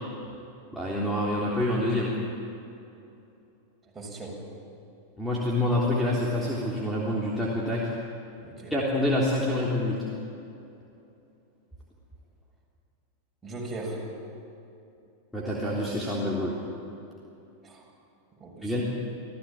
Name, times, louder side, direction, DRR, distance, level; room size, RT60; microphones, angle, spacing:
voice 1, 0.7-2.1 5.2-7.9 8.7-10.0 15.3-16.6 18.6-18.8, left 1 dB, ahead, -5 dB, 3.4 m, -27 dB
voice 2, 3.8-4.4 8.4-8.7 13.4-14.1 17.6-17.8 18.4-18.8, right 2 dB, 15° right, -2 dB, 7.0 m, -38 dB
27.0 x 16.0 x 8.9 m, 2.7 s
figure-of-eight pair, 90°, 0 cm